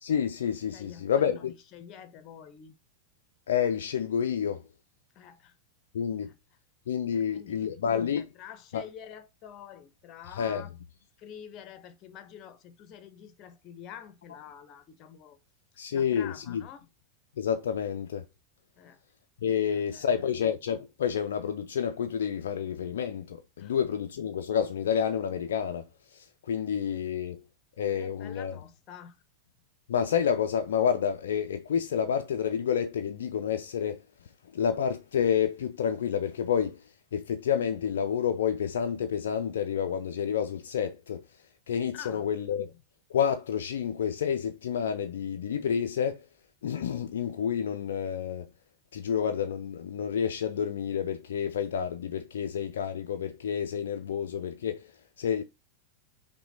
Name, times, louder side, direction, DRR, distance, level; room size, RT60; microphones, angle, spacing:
voice 1, 0.0-1.5 3.5-4.6 5.9-6.3 6.9-8.2 8.7-8.8 10.4-10.6 15.8-16.6 17.4-18.2 19.4-27.4 27.8-28.5 29.9-34.0 34.5-41.2 41.7-42.7 43.1-46.3 46.6-48.5 48.9-55.4, left 8 dB, 60° left, 0.3 m, -29 dB
voice 2, 0.7-1.4 1.7-2.7 5.1-5.6 6.2-6.3 7.1-7.8 8.1-10.7 11.2-15.4 15.9-16.9 18.8-19.0 19.5-20.3 23.6-23.7 28.0-29.2 41.9-42.3, left 9 dB, 35° left, 0.7 m, -47 dB
5.7 x 2.2 x 3.9 m
figure-of-eight pair, 90°, 0 cm